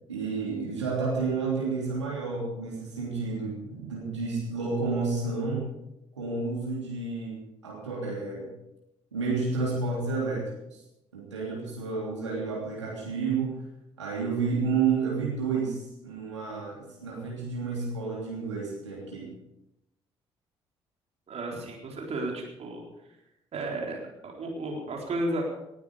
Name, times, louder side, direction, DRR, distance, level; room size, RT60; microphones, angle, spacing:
voice 1, 0.1-5.6 6.2-8.5 9.1-10.5 11.1-13.6 14.0-19.3, right 4 dB, 85° right, -3 dB, 3.1 m, -30 dB
voice 2, 21.3-22.8 23.5-25.4, right 2 dB, 45° right, 0 dB, 4.1 m, -33 dB
19.5 x 12.0 x 5.1 m, 0.88 s
figure-of-eight pair, 45°, 15 cm